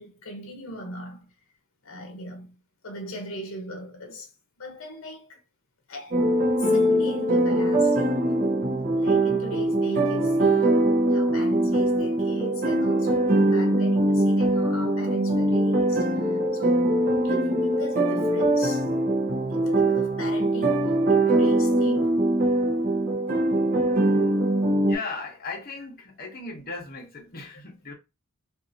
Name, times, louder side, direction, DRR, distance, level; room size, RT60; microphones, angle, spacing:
voice 1, 0.0-1.3 1.8-4.3 4.6-5.4 5.9-6.2 6.6-8.4 8.9-18.9 19.5-22.2, equal, 75° left, 0.8 m, -39 dB
sound 1, 6.1-24.9, right 1 dB, 40° right, 0.7 m, -22 dB
voice 2, 24.9-27.9, left 3 dB, 45° left, 0.9 m, -37 dB
2.7 x 2.4 x 2.6 m
head